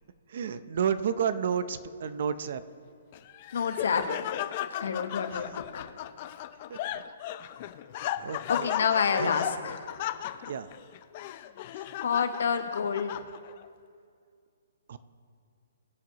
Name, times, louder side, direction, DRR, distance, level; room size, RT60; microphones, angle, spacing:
voice 1, 0.3-2.6 5.3-5.5 6.7-6.8 8.2-8.7 9.2-9.3 10.5-10.7 14.9-15.0, right 7 dB, 50° right, 13 dB, 0.6 m, -31 dB
Laughter, 3.1-13.7, left 12 dB, 30° left, 0.4 m, -36 dB
voice 2, 3.5-4.0 4.8-5.9 8.5-9.8 12.0-13.2, left 6 dB, 70° left, 7 dB, 1.2 m, -28 dB
22.5 x 7.7 x 3.0 m, 2.2 s
hypercardioid pair, 170°, 0 cm